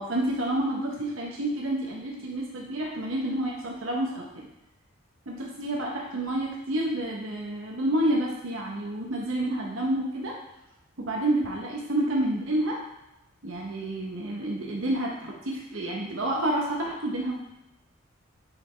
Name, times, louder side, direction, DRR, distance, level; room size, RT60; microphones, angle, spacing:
voice 1, 0.0-4.2 5.3-10.4 11.0-12.8 13.4-17.4, right 1 dB, 85° right, -1 dB, 1.0 m, -29 dB
6.9 x 4.9 x 3.3 m, 0.93 s
head